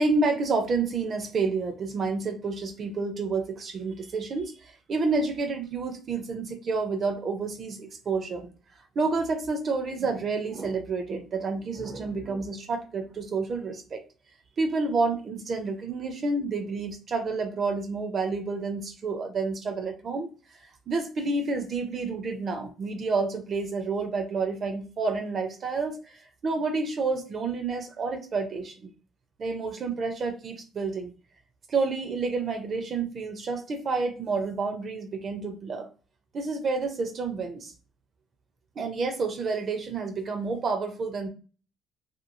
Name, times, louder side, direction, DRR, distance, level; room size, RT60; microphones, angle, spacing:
voice 1, 0.0-8.5 9.0-14.0 14.6-20.3 20.9-26.2 26.4-28.9 29.4-31.1 31.7-35.9 36.3-37.7 38.8-41.3, right 4 dB, 40° right, 6 dB, 0.4 m, -29 dB
2.9 x 2.2 x 2.4 m, 0.36 s
cardioid pair, 145°, 0 cm